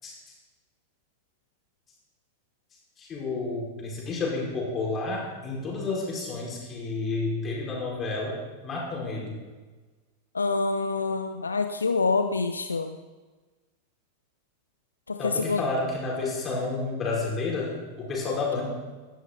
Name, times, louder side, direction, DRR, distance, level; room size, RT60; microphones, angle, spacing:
voice 1, 0.0-0.4 3.0-9.4 15.2-18.7, left 3 dB, 25° left, -3 dB, 5.4 m, -30 dB
voice 2, 10.3-13.0 15.1-15.6, left 4 dB, 75° left, 8 dB, 0.7 m, -26 dB
17.5 x 12.5 x 4.1 m, 1.3 s
figure-of-eight pair, 90°, 0 cm